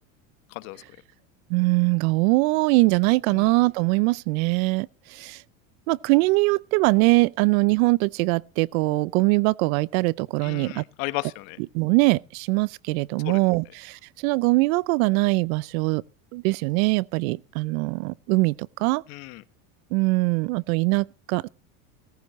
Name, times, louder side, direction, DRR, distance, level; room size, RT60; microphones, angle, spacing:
voice 1, 0.5-0.8 3.3-3.5 10.4-11.6 13.2-13.4 19.1-19.4, left 21 dB, 70° left, 1.4 m, -34 dB
voice 2, 1.5-5.4 5.9-10.8 11.7-16.0 16.3-19.0 19.9-21.5, right 24 dB, 75° right, 0.6 m, -22 dB
17.5 x 14.0 x 3.1 m
supercardioid pair, 120°, 42 cm